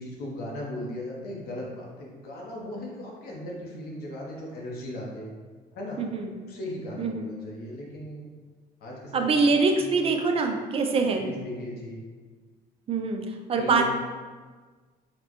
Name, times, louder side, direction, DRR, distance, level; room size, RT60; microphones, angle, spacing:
voice 1, 0.0-5.3 5.7-6.0 6.5-8.3 8.8-10.0 11.2-12.0 13.6-13.9, left 1 dB, 65° left, -2 dB, 0.7 m, -37 dB
voice 2, 6.0-6.3 7.0-7.3 9.1-11.2 12.9-13.2 13.5-13.9, right 4 dB, 35° right, 4 dB, 0.4 m, -24 dB
4.1 x 2.1 x 2.9 m, 1.4 s
cardioid pair, 110°, 17 cm